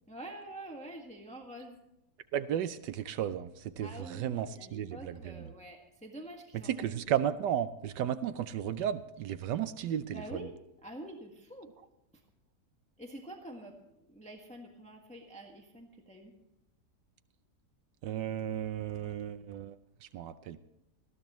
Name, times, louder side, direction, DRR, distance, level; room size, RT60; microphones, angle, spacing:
voice 1, 0.1-1.8 3.8-6.7 10.1-10.5 10.8-11.7 13.0-16.3, right 1 dB, 5° left, 1 dB, 1.5 m, -47 dB
voice 2, 2.3-5.5 6.5-10.5 18.0-20.6, right 10 dB, 85° right, 12 dB, 1.3 m, -34 dB
19.0 x 15.0 x 3.1 m, 0.89 s
omnidirectional pair, 1.8 m